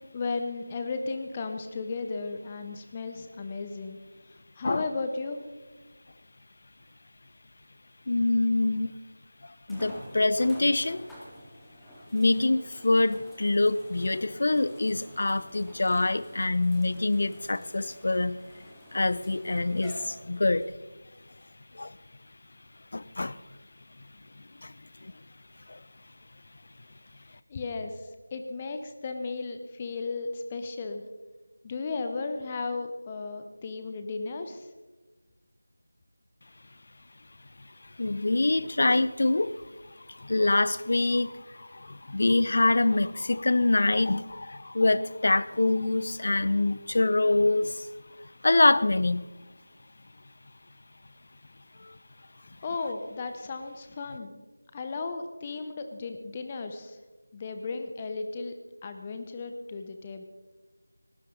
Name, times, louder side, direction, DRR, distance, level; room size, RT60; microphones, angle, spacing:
voice 1, 0.1-4.0 4.6-5.4 27.5-28.0 28.3-31.0 31.6-34.7 52.6-54.4 54.7-57.0 57.3-58.5 58.8-60.2, left 3 dB, 20° left, 0.9 m, -35 dB
voice 2, 8.1-8.9 9.7-11.1 12.1-18.4 18.9-20.7 21.8-21.9 22.9-23.4 24.6-24.7 25.7-25.8 38.0-39.6 40.2-41.3 41.9-47.8 48.4-49.2, left 2 dB, 45° left, 0.6 m, -25 dB
sound 1, 9.7-20.7 21.4-21.5 25.0-25.1, equal, 5° left, 2.0 m, -49 dB
20.0 x 17.5 x 3.9 m
figure-of-eight pair, 170°, 0 cm